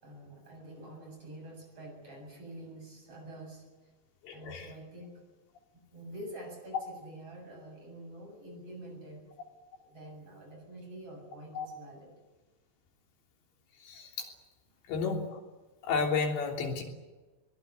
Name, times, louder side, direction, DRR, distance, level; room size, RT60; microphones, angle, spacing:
voice 1, 0.0-3.7 4.3-5.2 5.9-9.2 9.8-12.2, right 1 dB, 30° right, 2 dB, 8.5 m, -47 dB
voice 2, 4.2-4.7 11.6-11.7 13.9-14.3 14.9-15.4 15.8-16.8, left 5 dB, 80° left, 1 dB, 5.6 m, -32 dB
22.5 x 21.0 x 9.5 m, 1.2 s
omnidirectional pair, 5.0 m